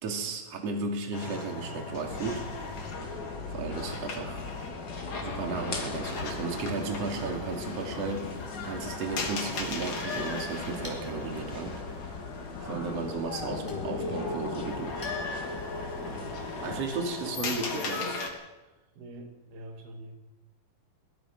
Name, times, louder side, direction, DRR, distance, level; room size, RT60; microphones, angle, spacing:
voice 1, 0.0-2.5 3.5-4.5 5.2-11.8 12.6-15.0 16.0-16.2 16.6-18.2, right 4 dB, 45° right, 3 dB, 3.5 m, -34 dB
sound 1, 1.1-18.3, left 3 dB, 60° left, 4.8 m, -37 dB
sound 2, 2.1-16.8, left 3 dB, 30° left, 2.5 m, -41 dB
Chink clink, 10.2-15.9, equal, 5° right, 4.7 m, -53 dB
voice 2, 16.1-16.4 19.0-20.2, right 1 dB, 85° right, 4 dB, 4.3 m, -45 dB
22.0 x 20.5 x 6.1 m, 1.1 s
omnidirectional pair, 4.4 m